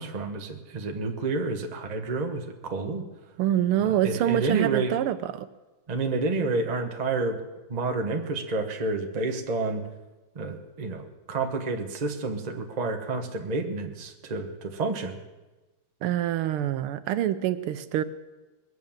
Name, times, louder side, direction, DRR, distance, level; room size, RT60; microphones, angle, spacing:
voice 1, 0.0-3.1 3.8-5.0 5.9-7.4 7.7-9.8 10.3-15.2, right 3 dB, 25° right, 4 dB, 0.9 m, -29 dB
voice 2, 3.4-5.5 16.0-18.0, right 12 dB, 80° right, 12 dB, 1.5 m, -26 dB
21.0 x 8.0 x 7.2 m, 1.1 s
omnidirectional pair, 2.4 m